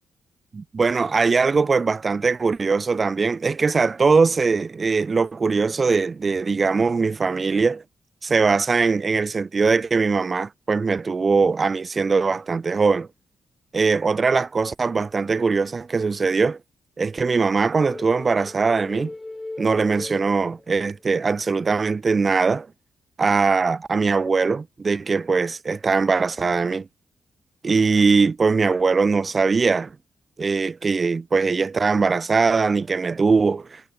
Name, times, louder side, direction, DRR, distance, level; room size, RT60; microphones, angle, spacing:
voice 1, 0.5-7.8 8.2-13.1 13.7-16.6 17.0-19.1 19.6-22.7 23.2-26.9 27.6-29.9 30.4-33.8, right 4 dB, 40° right, 0.7 m, -21 dB
sound 1, 17.8-21.0, left 2 dB, 20° left, 3.5 m, -37 dB
cardioid pair, 75°, 0 cm